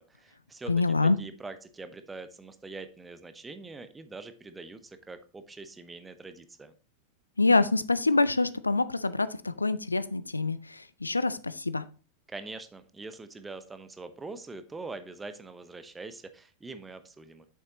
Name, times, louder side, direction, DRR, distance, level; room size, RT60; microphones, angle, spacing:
voice 1, 0.0-6.7 12.3-17.5, right 3 dB, 10° right, 11 dB, 0.8 m, -43 dB
voice 2, 0.7-1.2 7.4-11.8, left 3 dB, 80° left, 15 dB, 0.4 m, -26 dB
8.4 x 6.8 x 2.9 m, 0.36 s
figure-of-eight pair, 90°, 0 cm